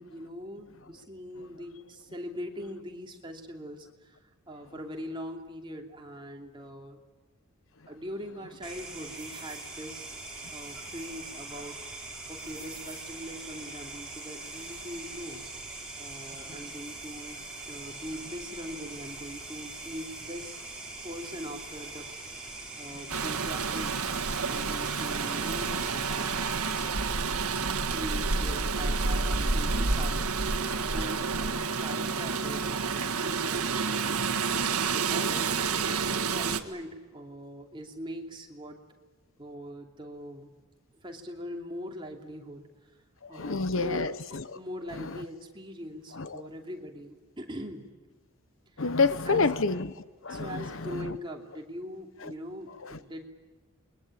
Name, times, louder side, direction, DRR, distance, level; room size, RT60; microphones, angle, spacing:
voice 1, 0.0-4.2 4.5-7.0 7.9-15.5 16.0-20.6 21.0-22.1 22.8-24.1 24.5-27.0 27.9-30.5 30.8-31.5 31.8-34.3 34.8-38.8 39.4-40.5 41.0-42.7 43.3-44.2 44.5-47.9 49.1-49.5 50.3-53.3, equal, 20° right, 2.8 m, -42 dB
sound 1, 8.6-26.9, right 2 dB, 5° right, 5.4 m, -42 dB
Rain, 23.1-36.6, right 4 dB, 85° right, 1.7 m, -29 dB
voice 2, 43.2-44.4 45.0-45.2 46.2-46.4 48.8-49.9 50.2-51.1 52.8-52.9, left 4 dB, 60° left, 1.0 m, -28 dB
28.5 x 22.5 x 8.6 m
head